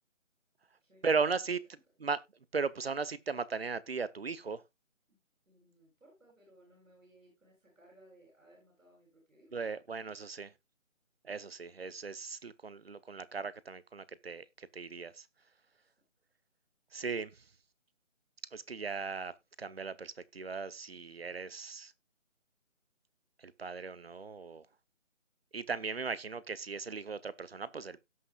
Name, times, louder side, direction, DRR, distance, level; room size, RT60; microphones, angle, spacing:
voice 1, 1.0-1.6 2.0-2.2 2.5-4.6 9.5-10.5 11.2-15.3 16.9-17.4 18.5-21.9 23.4-24.7 25.5-28.0, right 4 dB, 50° right, 0.7 m, -37 dB
voice 2, 5.5-9.6 15.8-15.9, right 1 dB, 90° right, 7.5 m, -62 dB
17.0 x 6.0 x 2.3 m
figure-of-eight pair, 170°, 38 cm